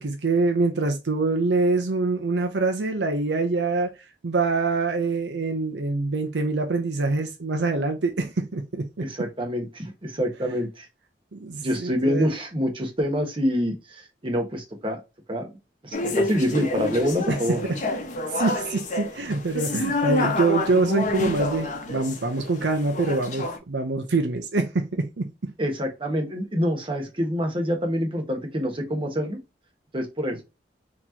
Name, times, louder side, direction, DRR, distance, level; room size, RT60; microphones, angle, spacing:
voice 1, 0.0-3.9 4.2-9.1 11.3-12.3 17.3-17.4 18.3-25.5, right 3 dB, 75° right, 0.6 m, -25 dB
voice 2, 9.0-10.9 11.6-15.0 15.3-15.5 15.8-17.6 25.6-29.4 29.9-30.4, equal, 30° right, 1.2 m, -26 dB
sound 1, 15.9-23.6, left 2 dB, 45° left, 0.8 m, -28 dB
4.3 x 3.0 x 2.7 m
head